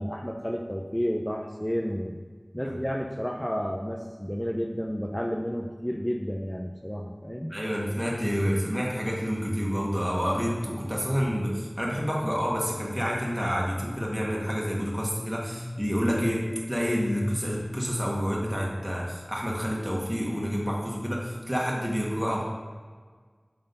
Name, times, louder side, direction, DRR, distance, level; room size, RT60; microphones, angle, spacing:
voice 1, 0.0-2.1 2.5-7.5, equal, 10° left, 1 dB, 0.6 m, -31 dB
voice 2, 7.5-22.4, equal, 10° right, -4 dB, 1.6 m, -28 dB
7.8 x 4.0 x 5.4 m, 1.5 s
wide cardioid pair, 40°, 0 cm